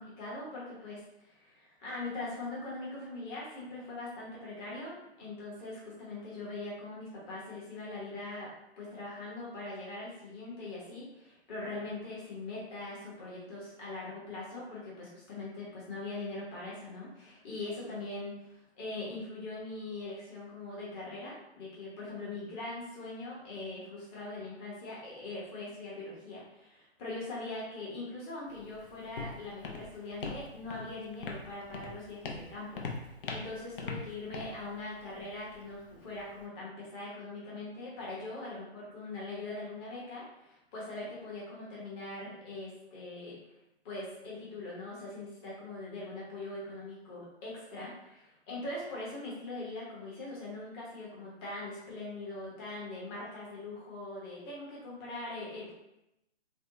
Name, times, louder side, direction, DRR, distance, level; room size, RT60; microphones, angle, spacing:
voice 1, 0.0-8.5 8.8-43.4 43.8-55.7, left 2 dB, 20° left, -6 dB, 0.9 m, -42 dB
Walk footsteps, 28.5-36.4, left 3 dB, 55° left, 0.6 m, -43 dB
3.4 x 2.1 x 2.7 m, 0.88 s
figure-of-eight pair, 130°, 33 cm